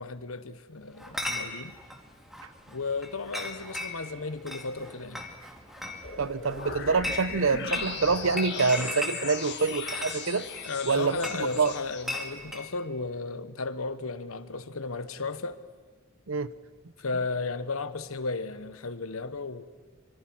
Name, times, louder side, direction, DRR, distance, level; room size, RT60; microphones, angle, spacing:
voice 1, 0.0-1.8 2.7-5.2 10.6-15.6 17.0-19.6, left 3 dB, 80° left, 1.2 m, -34 dB
Chatter / Chink clink, 1.0-12.7, left 1 dB, ahead, 2.2 m, -38 dB
sound 1, 6.0-12.0, left 6 dB, 55° left, 2.0 m, -38 dB
voice 2, 6.2-10.5 10.9-11.7 16.3-16.5, right 4 dB, 70° right, 0.8 m, -26 dB
24.5 x 24.0 x 6.2 m
head